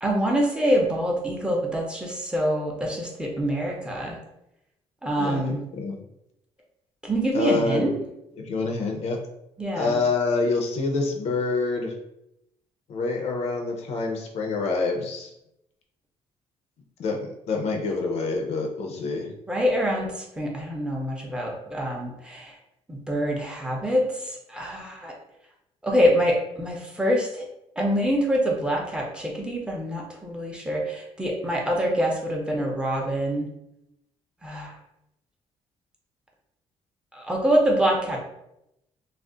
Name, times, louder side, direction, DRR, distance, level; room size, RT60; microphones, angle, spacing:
voice 1, 0.0-4.2 5.0-5.6 7.0-7.9 9.6-10.0 19.5-22.5 22.9-25.1 25.8-27.4 27.8-33.5 34.4-34.7 37.1-38.2, equal, 10° right, -1 dB, 0.5 m, -25 dB
voice 2, 5.2-6.0 7.3-7.8 8.4-9.2 9.7-11.9 12.9-15.3 17.0-19.3, left 3 dB, 65° left, 2 dB, 0.6 m, -26 dB
2.4 x 2.0 x 3.7 m, 0.84 s
cardioid pair, 130°, 12 cm